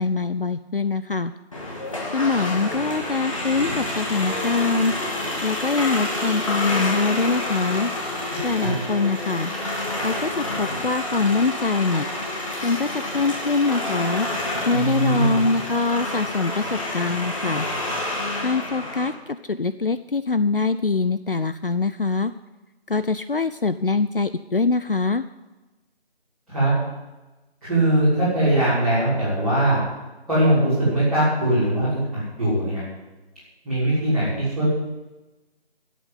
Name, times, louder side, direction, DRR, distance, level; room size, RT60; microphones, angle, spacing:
voice 1, 0.0-1.3 2.1-4.9 5.4-7.9 8.4-9.5 10.0-12.1 12.6-14.3 14.7-17.7 18.4-22.3 22.9-25.2, left 4 dB, 60° left, 12 dB, 0.5 m, -23 dB
sound 1, 1.5-19.1, left 1 dB, 30° left, 2.6 m, -28 dB
voice 2, 14.7-15.4 26.5-26.7 27.6-29.8 30.3-32.0 32.4-32.8 33.6-34.7, right 1 dB, ahead, -18 dB, 3.6 m, -21 dB
11.0 x 8.4 x 9.3 m, 1.1 s
figure-of-eight pair, 165°, 32 cm